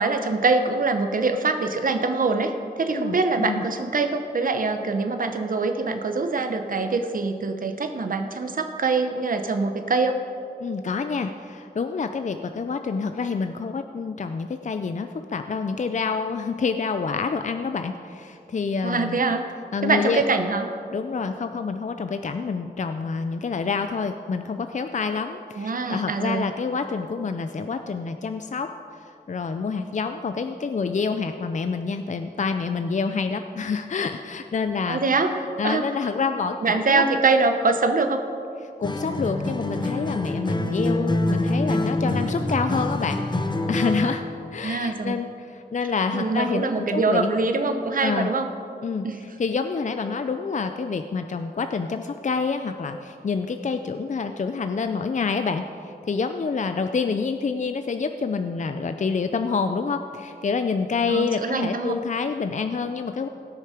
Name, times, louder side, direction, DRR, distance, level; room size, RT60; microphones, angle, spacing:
voice 1, 0.0-10.2 18.8-19.4 19.8-20.7 25.6-26.5 34.9-35.3 35.6-35.8 36.6-38.2 44.6-45.2 46.1-48.5 49.0-49.2 61.1-61.9, right 3 dB, 55° right, 6 dB, 0.9 m, -24 dB
voice 2, 2.9-3.6 10.6-19.2 19.7-20.2 20.9-28.7 29.3-35.0 35.6-37.0 38.8-43.2 43.7-44.2 44.5-47.3 48.0-48.3 48.8-63.3, left 5 dB, 45° left, 8 dB, 0.5 m, -27 dB
Acoustic guitar, 38.8-44.2, left 1 dB, 25° left, 1.0 m, -25 dB
18.0 x 6.5 x 5.0 m, 2.6 s
cardioid pair, 65°, 17 cm